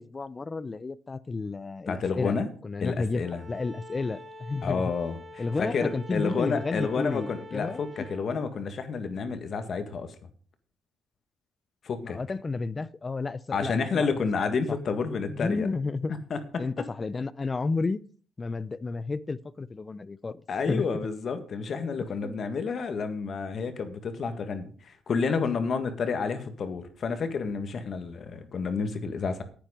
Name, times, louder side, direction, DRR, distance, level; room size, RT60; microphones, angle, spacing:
voice 1, 0.0-2.4 2.6-4.8 5.4-7.8 12.0-14.1 15.2-16.1 16.6-18.0 18.4-20.4 20.7-20.8 22.2-22.3, left 3 dB, 30° left, 0.6 m, -31 dB
voice 2, 1.9-2.5 2.8-3.4 4.6-10.1 11.8-12.2 13.5-15.7 16.3-16.6 20.5-29.4, left 5 dB, 55° left, 1.8 m, -30 dB
Bowed string instrument, 3.2-8.3, left 1 dB, 15° right, 5.2 m, -46 dB
10.0 x 9.2 x 5.2 m
cardioid pair, 90°, 0 cm